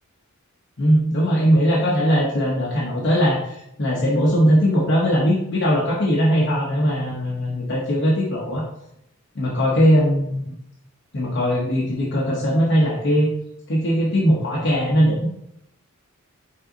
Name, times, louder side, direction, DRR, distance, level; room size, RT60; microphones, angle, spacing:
voice 1, 0.8-8.6 9.3-10.6 11.1-13.3 13.7-15.3, equal, 50° left, -4 dB, 0.8 m, -20 dB
5.3 x 2.5 x 3.8 m, 0.78 s
head